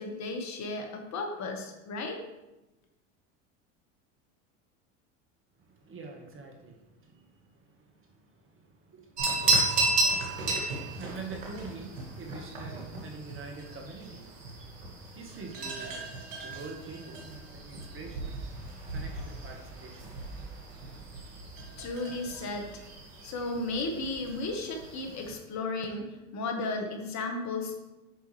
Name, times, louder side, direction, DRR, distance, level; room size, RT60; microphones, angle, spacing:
voice 1, 0.0-2.2 21.8-22.7 23.2-27.7, left 2 dB, 45° left, 3 dB, 1.6 m, -34 dB
voice 2, 5.6-14.5 15.1-16.1 16.4-18.3 18.9-20.1, right 4 dB, 35° right, 2 dB, 1.6 m, -46 dB
sound 1, 9.2-25.3, right 2 dB, 85° right, 2.1 m, -34 dB
8.1 x 5.5 x 3.4 m, 1.0 s
hypercardioid pair, 85°, 38 cm